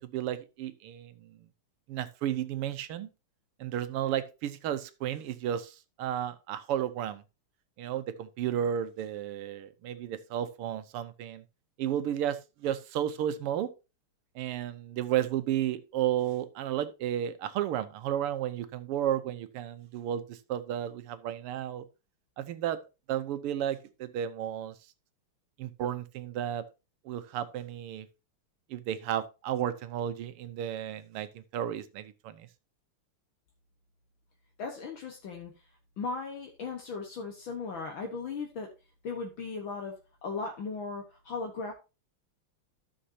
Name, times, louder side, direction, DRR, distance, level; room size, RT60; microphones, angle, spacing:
voice 1, 0.0-1.5 1.9-3.1 3.6-7.2 7.8-11.4 11.8-13.7 14.4-21.9 22.4-22.8 23.1-24.8 25.6-26.6 27.1-28.1 28.7-32.5, right 10 dB, 90° right, 1.8 m, -33 dB
voice 2, 34.6-35.5 36.0-38.7 39.0-39.9 40.2-41.7, left 4 dB, 65° left, 2.0 m, -37 dB
13.0 x 6.6 x 2.8 m
omnidirectional pair, 2.4 m